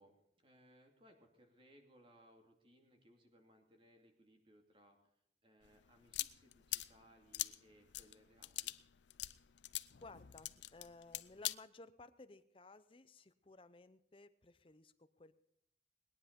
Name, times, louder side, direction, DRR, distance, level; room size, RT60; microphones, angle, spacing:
voice 1, 0.0-5.1 5.4-8.8, equal, 30° right, 3 dB, 2.6 m, -66 dB
sound 1, 5.6-11.6, left 15 dB, 80° left, 0.6 m, -44 dB
voice 2, 10.0-15.3, left 3 dB, 30° left, 12 dB, 0.8 m, -58 dB
20.5 x 10.0 x 5.3 m, 0.76 s
head